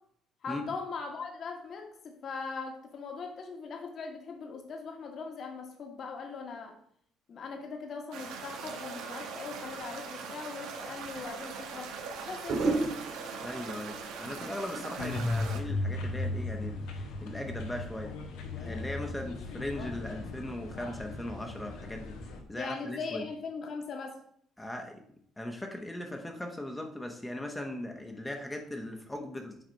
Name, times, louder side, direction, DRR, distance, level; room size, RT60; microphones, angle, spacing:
voice 1, 0.4-6.7 7.3-12.8 14.8-14.9 22.6-24.2, left 4 dB, 50° left, 3 dB, 1.6 m, -40 dB
sound 1, 8.1-15.6, right 5 dB, 85° right, 1.2 m, -41 dB
sound 2, 11.1-11.2 12.5-15.6 15.9-16.3, right 3 dB, 60° right, 2.8 m, -35 dB
voice 2, 13.4-18.2 18.6-23.3 24.6-25.0 25.4-29.6, left 1 dB, 10° left, 3 dB, 1.0 m, -39 dB
sound 3, 15.0-22.4, left 2 dB, 85° left, 1.3 m, -36 dB
7.6 x 4.0 x 5.2 m, 0.64 s
cardioid pair, 115°, 0 cm